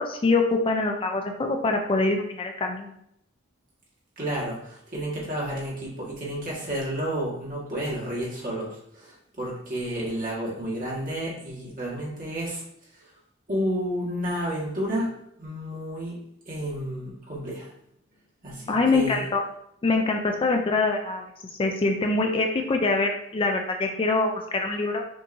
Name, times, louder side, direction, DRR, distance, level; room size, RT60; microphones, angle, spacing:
voice 1, 0.0-2.9 18.7-19.4 19.8-21.2 21.6-25.0, left 3 dB, 25° left, 3 dB, 0.4 m, -24 dB
voice 2, 4.2-12.6 13.5-15.1 15.4-16.2 16.4-17.7 18.4-19.2, equal, 45° right, -5 dB, 1.7 m, -31 dB
6.1 x 2.9 x 2.6 m, 0.74 s
head